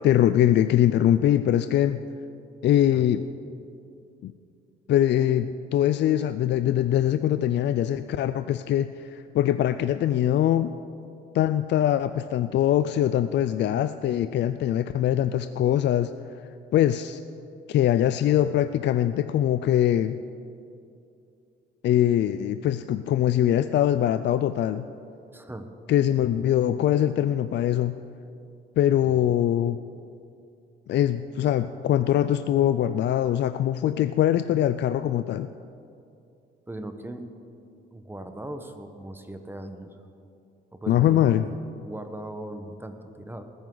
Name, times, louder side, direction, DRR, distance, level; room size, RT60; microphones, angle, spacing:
voice 1, 0.0-2.0 2.6-3.2 4.2-4.3 4.9-10.7 11.3-16.1 16.7-17.2 17.7-20.2 21.8-24.8 25.9-27.9 28.8-29.8 30.9-35.5 40.9-41.4, left 11 dB, 60° left, 11 dB, 0.4 m, -22 dB
voice 2, 25.3-25.7 29.0-29.8 36.7-37.2 37.9-40.0 40.7-41.6 41.8-43.4, right 1 dB, 10° right, 7 dB, 1.1 m, -39 dB
20.0 x 9.4 x 3.9 m, 2.6 s
cardioid pair, 90°, 20 cm